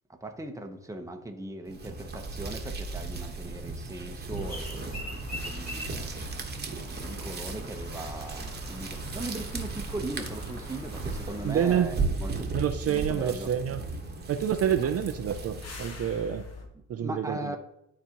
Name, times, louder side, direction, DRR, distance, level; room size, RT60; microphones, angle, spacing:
voice 1, 0.1-6.0 6.7-12.5 12.9-13.5 16.7-17.6, right 2 dB, 10° right, 4 dB, 1.0 m, -39 dB
sound 1, 1.7-16.1, right 3 dB, 35° right, 1.2 m, -36 dB
sound 2, 4.4-11.6, equal, 30° left, 2.7 m, -42 dB
sound 3, 6.8-16.7, left 4 dB, 55° left, 1.4 m, -48 dB
voice 2, 11.4-11.9 12.5-13.8 14.3-16.5 16.9-17.6, right 9 dB, 50° right, 8 dB, 0.5 m, -28 dB
12.0 x 4.2 x 3.0 m, 0.82 s
cardioid pair, 90°, 30 cm